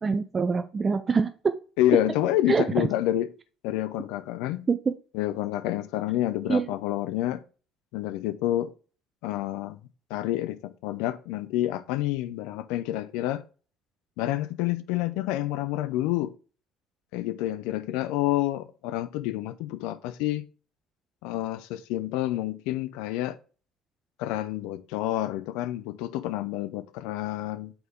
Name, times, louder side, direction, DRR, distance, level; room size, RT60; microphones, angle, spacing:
voice 1, 0.0-1.5 2.5-2.9 4.7-4.8 6.5-6.7, right 5 dB, 30° right, 0.5 m, -24 dB
voice 2, 1.8-3.3 3.6-4.7 5.1-7.4 7.9-8.7 9.2-9.8 10.1-13.4 14.2-16.3 17.1-20.4 21.2-23.4 24.2-27.7, left 14 dB, 65° left, 0.4 m, -28 dB
4.5 x 4.2 x 5.0 m
figure-of-eight pair, 55°, 0 cm